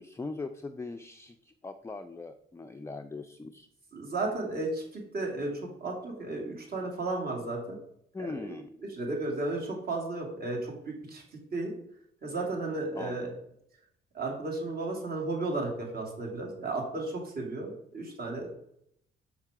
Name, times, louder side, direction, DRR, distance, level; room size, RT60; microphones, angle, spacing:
voice 1, 0.0-3.7 8.1-8.7 13.0-13.2, left 3 dB, 15° left, 6 dB, 0.4 m, -40 dB
voice 2, 3.9-7.8 8.2-8.6 8.9-11.2 11.5-11.7 12.2-13.3 14.1-18.5, right 2 dB, 50° right, 0 dB, 2.4 m, -34 dB
6.1 x 5.6 x 4.8 m, 0.73 s
cardioid pair, 90°, 20 cm